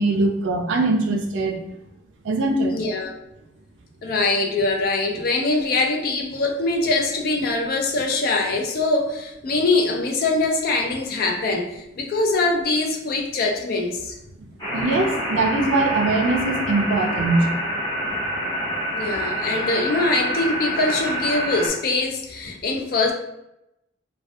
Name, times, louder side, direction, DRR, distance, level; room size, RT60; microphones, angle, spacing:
voice 1, 0.0-1.6 2.2-2.8 14.4-14.5 14.7-17.5, right 2 dB, 75° right, 4 dB, 0.4 m, -21 dB
voice 2, 2.7-3.2 4.0-14.2 19.0-23.1, left 3 dB, 50° left, 2 dB, 0.4 m, -23 dB
sound 1, 14.6-21.7, equal, 25° left, 0.9 m, -27 dB
2.3 x 2.2 x 2.6 m, 0.86 s
head